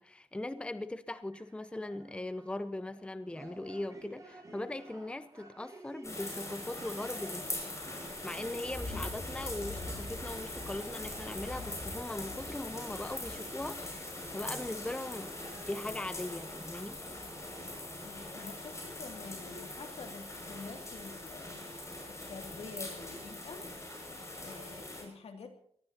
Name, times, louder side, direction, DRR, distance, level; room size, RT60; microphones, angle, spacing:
voice 1, 0.0-7.5 8.2-17.0, left 1 dB, 10° left, 0.6 m, -40 dB
sound 1, 1.3-18.2, right 2 dB, 30° right, 6.5 m, -55 dB
sound 2, 6.0-25.0, left 2 dB, 30° left, 6.4 m, -42 dB
voice 2, 18.0-21.7 22.1-23.7 24.4-25.6, left 4 dB, 75° left, 2.6 m, -47 dB
24.5 x 19.0 x 2.9 m
wide cardioid pair, 140°, 11 cm